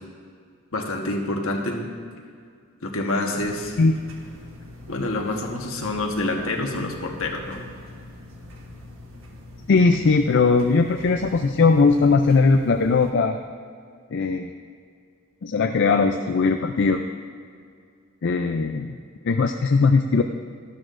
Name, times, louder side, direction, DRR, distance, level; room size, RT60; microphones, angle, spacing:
voice 1, 0.7-1.9 2.8-3.8 4.9-7.6, left 2 dB, 70° left, 1 dB, 1.3 m, -27 dB
sound 1, 3.4-13.1, left 1 dB, 70° right, 1.3 m, -43 dB
voice 2, 9.7-13.4 14.1-14.5 15.4-17.0 18.2-19.0 19.2-20.2, left 4 dB, 55° left, 5 dB, 0.4 m, -19 dB
13.0 x 12.0 x 2.6 m, 2.2 s
head